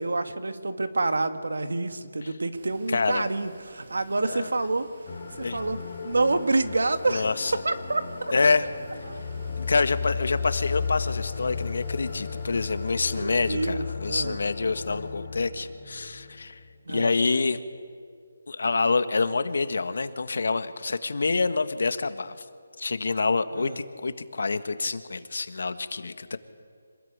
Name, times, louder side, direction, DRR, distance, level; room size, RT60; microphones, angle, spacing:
voice 1, 0.0-4.9 5.4-5.8 6.0-7.3 7.6-8.0 9.1-9.2 13.1-14.4 16.9-17.1 23.6-23.8, right 2 dB, 85° right, 9 dB, 2.1 m, -27 dB
sound 1, 2.5-13.3, right 2 dB, 50° right, 6.5 m, -50 dB
voice 2, 2.9-3.2 4.3-4.5 5.4-5.7 7.1-7.5 8.3-8.7 9.6-16.6 16.9-17.6 18.5-22.3 22.8-26.4, left 4 dB, 60° left, 11 dB, 1.6 m, -27 dB
sound 2, 5.1-17.0, left 5 dB, 35° left, 2.5 m, -35 dB
26.0 x 20.0 x 9.6 m, 2.2 s
hypercardioid pair, 175°, 0 cm